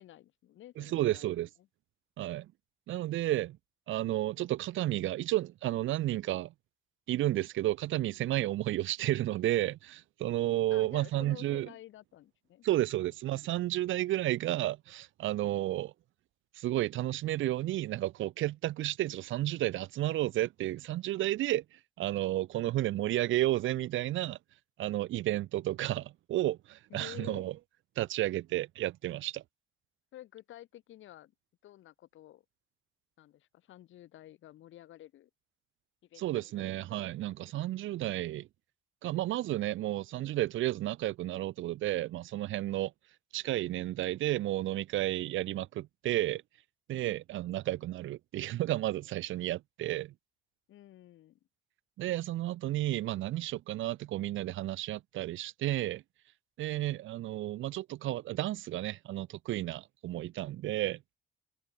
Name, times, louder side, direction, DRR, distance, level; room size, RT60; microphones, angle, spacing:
voice 1, 0.0-1.3 10.7-12.7 26.9-27.5 30.1-31.3 31.6-32.4 33.2-35.3 36.1-36.3 36.6-36.7 50.7-51.4, left 13 dB, 80° left, 2.0 m, -51 dB
voice 2, 0.8-1.5 2.2-2.5 2.9-3.6 3.9-6.5 7.1-11.7 12.6-15.9 16.5-24.4 24.8-27.5 28.0-29.4 36.2-38.5 39.0-42.9 43.3-46.4 46.9-50.1 52.0-56.0 56.6-61.0, right 15 dB, 75° right, 0.8 m, -32 dB
cardioid pair, 90°, 20 cm